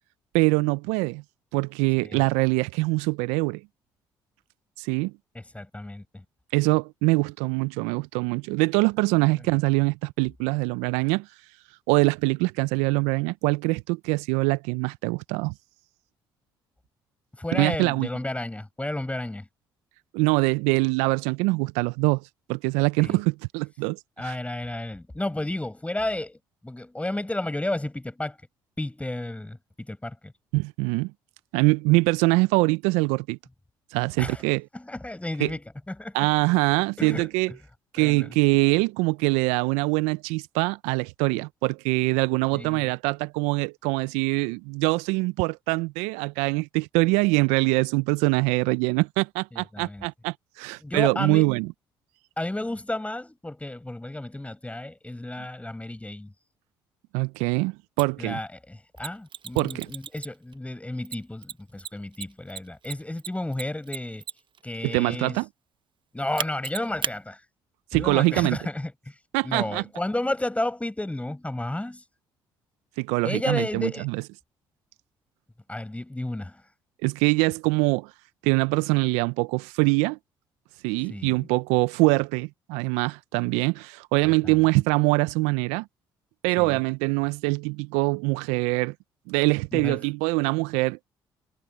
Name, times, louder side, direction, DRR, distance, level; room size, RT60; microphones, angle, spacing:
voice 1, 0.3-1.2 1.5-3.6 4.8-5.1 6.5-11.3 11.9-15.5 17.5-18.1 20.1-22.2 22.5-24.4 30.5-31.1 31.5-33.4 33.9-34.6 35.4-35.5 36.1-37.5 37.9-51.7 57.1-58.4 59.5-59.9 64.8-65.5 67.9-68.6 69.3-69.8 73.0-74.2 77.0-78.1 78.4-80.2 80.8-85.8 86.4-88.9 89.3-91.0, right 26 dB, 75° right, 0.8 m, -24 dB
voice 2, 5.3-6.2 9.5-9.6 17.4-19.5 23.0-23.2 24.2-26.4 26.6-28.4 28.8-30.3 34.2-34.4 34.7-35.6 35.9-36.2 37.0-37.3 38.0-38.3 42.5-42.9 49.5-50.1 50.8-51.5 52.4-56.3 58.2-64.2 64.6-65.4 66.1-67.4 67.9-69.1 69.4-72.0 73.2-74.1 75.7-76.6 81.1-81.5 84.2-84.6 86.6-86.8 89.7-90.1, left 1 dB, 10° left, 6.7 m, -32 dB
Mechanisms, 58.0-58.1 59.0-60.5 61.1-64.6 66.4-67.2, right 8 dB, 45° right, 0.9 m, -34 dB
hypercardioid pair, 50°, 12 cm